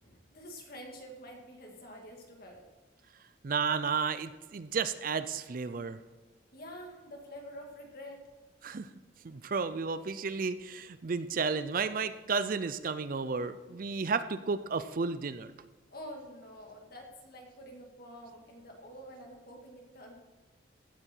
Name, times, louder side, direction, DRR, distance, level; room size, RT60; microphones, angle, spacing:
voice 1, 0.0-2.6 6.5-8.2 15.9-20.1, equal, 50° left, 2 dB, 2.1 m, -47 dB
voice 2, 3.4-6.0 8.6-8.9 9.2-15.5, right 5 dB, 45° right, 13 dB, 0.4 m, -32 dB
15.5 x 8.5 x 4.5 m, 1.2 s
head